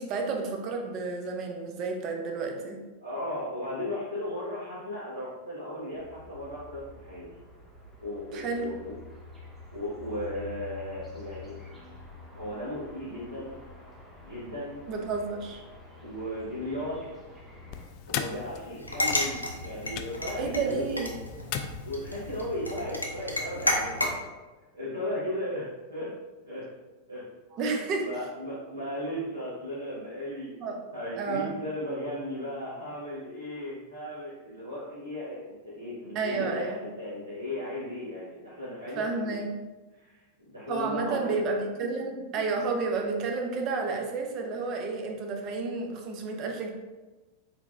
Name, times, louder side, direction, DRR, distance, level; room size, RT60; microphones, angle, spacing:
voice 1, 0.0-2.8 8.3-8.7 14.9-15.6 20.4-21.1 27.6-28.1 30.6-30.8 31.1-31.5 36.1-36.8 39.0-39.5 40.7-46.7, right 4 dB, 35° right, 3 dB, 0.7 m, -31 dB
voice 2, 3.0-7.2 8.0-8.9 9.7-11.6 12.3-13.6 14.2-14.8 16.0-17.0 18.1-21.0 21.8-23.9 24.7-25.6 25.9-26.1 26.4-26.6 27.1-27.3 27.8-30.5 30.9-39.3 39.9-41.3 41.8-42.4, left 1 dB, 80° right, -11 dB, 1.5 m, -36 dB
sound 1, 5.9-17.8, left 4 dB, 10° right, 1.3 m, -48 dB
sound 2, 17.7-22.5, left 8 dB, 45° left, 0.3 m, -39 dB
sound 3, 18.8-24.2, left 1 dB, 85° left, 0.6 m, -32 dB
4.5 x 4.1 x 2.6 m, 1.2 s
figure-of-eight pair, 90°, 0 cm